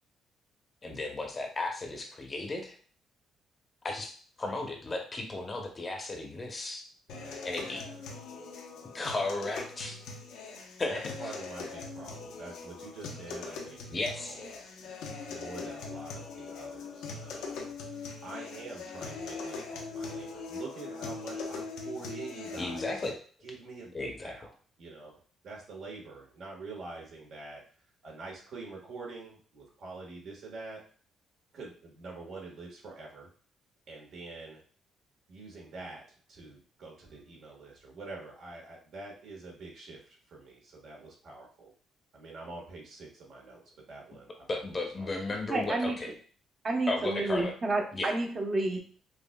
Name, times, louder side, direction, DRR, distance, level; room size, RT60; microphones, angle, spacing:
voice 1, 0.8-2.8 3.8-4.1 4.4-6.8 7.4-7.8 8.9-10.0 10.8-11.3 13.9-14.6 22.6-23.2 23.9-24.3 44.5-46.1 46.9-47.6 47.9-48.1, left 2 dB, 25° left, 2 dB, 0.7 m, -35 dB
sound 1, 7.1-23.1, left 4 dB, 90° left, 0.7 m, -41 dB
voice 2, 7.1-7.7 8.0-8.2 10.9-14.5 14.8-14.9 15.3-17.7 18.2-23.0 23.4-24.5 24.8-27.6 28.0-30.8 31.5-33.3 33.9-34.6 35.3-36.0 36.3-41.7 42.1-43.6 43.9-44.3 44.6-45.1, right 3 dB, 60° right, -2 dB, 1.4 m, -46 dB
voice 3, 45.5-46.0 46.6-48.8, right 2 dB, 35° right, 2 dB, 0.9 m, -30 dB
5.3 x 2.4 x 2.2 m, 0.43 s
cardioid pair, 110°, 0 cm